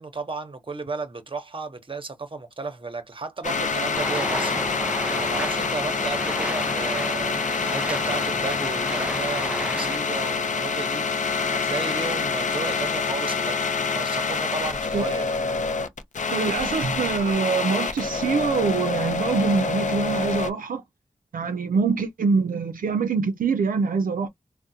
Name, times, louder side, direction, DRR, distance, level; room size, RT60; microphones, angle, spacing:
voice 1, 0.0-4.6 5.1-15.3, right 3 dB, 40° right, 0.8 m, -34 dB
sound 1, 3.4-20.5, left 4 dB, 65° left, 0.5 m, -26 dB
sound 2, 3.9-10.0, right 1 dB, 10° right, 0.4 m, -33 dB
voice 2, 16.3-20.8 21.3-24.3, right 5 dB, 90° right, 0.4 m, -24 dB
3.6 x 2.1 x 2.6 m
wide cardioid pair, 70°, 14 cm